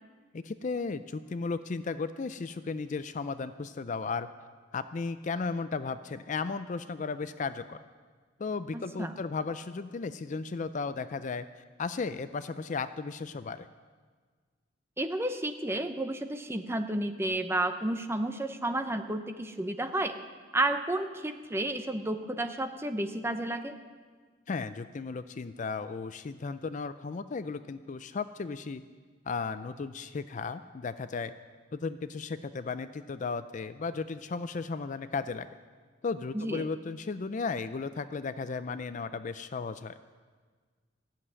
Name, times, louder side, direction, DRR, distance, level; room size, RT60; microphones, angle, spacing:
voice 1, 0.3-4.3 4.7-7.8 8.4-11.4 11.8-13.7 24.5-28.8 29.3-31.3 31.7-35.5 36.0-40.0, left 4 dB, 40° left, 12 dB, 0.4 m, -35 dB
voice 2, 8.7-9.1 15.0-20.1 20.5-23.8 36.3-36.7, right 1 dB, 15° right, 7 dB, 0.7 m, -31 dB
14.5 x 7.6 x 9.7 m, 1.5 s
head